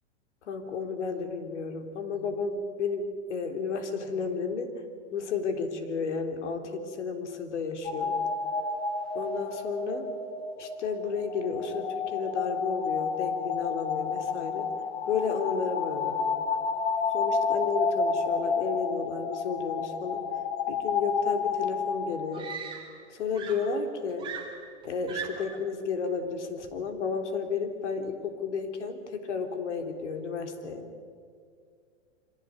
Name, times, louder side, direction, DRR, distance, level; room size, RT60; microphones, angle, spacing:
voice 1, 0.4-4.8 5.1-8.2 9.1-10.1 10.6-16.2 17.1-20.2 20.7-22.5 23.1-24.3 24.8-30.9, left 5 dB, 75° left, 6 dB, 3.7 m, -32 dB
sound 1, 7.8-22.5, left 5 dB, 60° left, 2.2 m, -30 dB
Screaming, 21.5-21.6 22.3-23.1 23.3-25.6 26.6-26.9, right 6 dB, 15° right, 3.5 m, -40 dB
25.5 x 17.0 x 9.6 m, 2.2 s
supercardioid pair, 155°, 35 cm